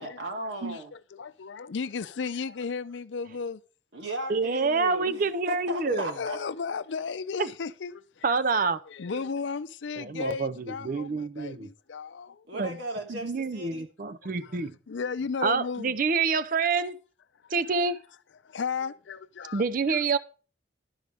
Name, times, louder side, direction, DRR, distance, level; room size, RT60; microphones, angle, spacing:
voice 1, 0.0-0.9 3.9-6.4 12.5-13.9, right 1 dB, 75° right, 2.5 m, -36 dB
voice 2, 0.7-3.6 5.9-12.4 14.2-15.9 18.4-20.0, left 5 dB, 80° left, 0.5 m, -35 dB
voice 3, 4.3-6.1 7.4-7.5 8.2-8.8 10.0-11.7 12.5-12.8 13.1-14.7 15.4-17.0 17.5-18.0 19.5-20.2, right 4 dB, 45° right, 0.5 m, -27 dB
12.0 x 4.9 x 6.7 m
head